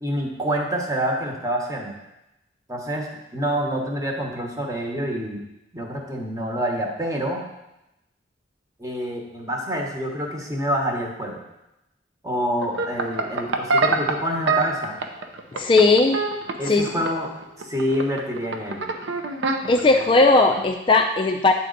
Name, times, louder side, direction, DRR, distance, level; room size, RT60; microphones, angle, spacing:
voice 1, 0.0-2.0 2.7-5.4 5.7-7.4 8.8-11.4 12.2-15.0 16.6-17.3 17.6-18.9, equal, 20° right, 0 dB, 1.1 m, -27 dB
sound 1, 12.6-20.7, right 3 dB, 90° right, 0.6 m, -26 dB
voice 2, 15.5-16.2 16.6-16.9 19.7-21.5, left 3 dB, 30° left, 3 dB, 0.4 m, -17 dB
8.9 x 4.2 x 3.9 m, 0.91 s
head